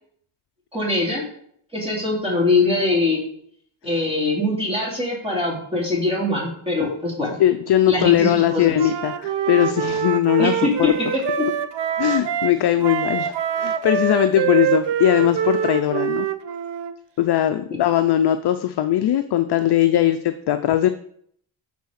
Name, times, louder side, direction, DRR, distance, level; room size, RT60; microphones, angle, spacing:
voice 1, 0.7-1.2 1.7-3.2 3.8-7.4 7.9-8.8 10.4-11.5, left 2 dB, 10° right, -4 dB, 2.7 m, -22 dB
voice 2, 7.4-10.9 12.0-16.3 17.2-20.9, left 12 dB, 55° left, 9 dB, 0.5 m, -20 dB
Wind instrument woodwind instrument, 8.7-12.6 12.8-16.9, right 8 dB, 55° right, 0.6 m, -25 dB
8.3 x 4.1 x 6.4 m, 0.65 s
wide cardioid pair, 160°, 50 cm